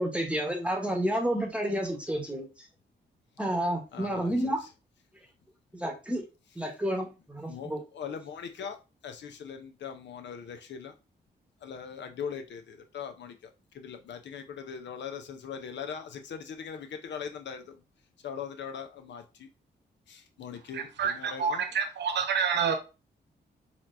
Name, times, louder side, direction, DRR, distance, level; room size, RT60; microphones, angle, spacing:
voice 1, 0.0-2.5 3.4-4.6 5.7-6.2 6.6-7.8, right 1 dB, 5° right, 3 dB, 1.0 m, -30 dB
voice 2, 3.9-4.5 7.5-8.8 9.0-10.9 11.6-13.4 13.7-17.8 18.2-19.5 20.1-21.6, left 7 dB, 75° left, 7 dB, 0.7 m, -40 dB
voice 3, 20.7-22.7, right 6 dB, 70° right, 6 dB, 0.7 m, -28 dB
4.2 x 2.9 x 2.5 m, 0.29 s
cardioid pair, 60°, 19 cm